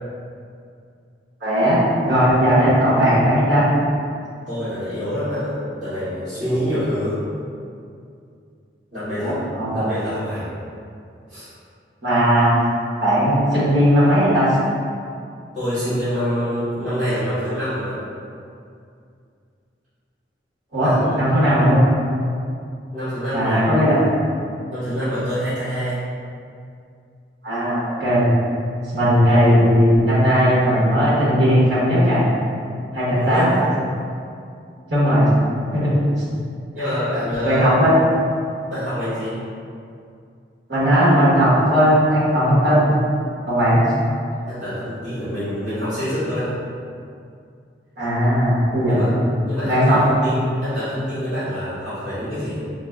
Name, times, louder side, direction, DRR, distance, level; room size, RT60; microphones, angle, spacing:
voice 1, 1.4-3.7 9.2-9.9 12.0-12.5 13.0-14.5 20.7-21.8 23.3-24.0 27.4-28.3 28.9-32.2 32.9-33.5 34.9-35.2 35.7-36.0 36.8-36.9 37.4-38.0 40.7-42.9 43.5-43.8 48.0-49.1 49.6-50.0, equal, 70° right, -10 dB, 1.2 m, -17 dB
voice 2, 4.5-7.2 8.9-9.4 9.7-10.5 11.3-11.5 15.5-18.0 20.8-21.2 22.9-24.0 24.7-26.0 33.1-33.7 36.7-37.7 38.7-39.4 44.5-46.5 48.9-49.1 49.4-52.6, equal, 45° right, -19 dB, 1.5 m, -26 dB
3.9 x 2.1 x 3.6 m, 2.4 s
head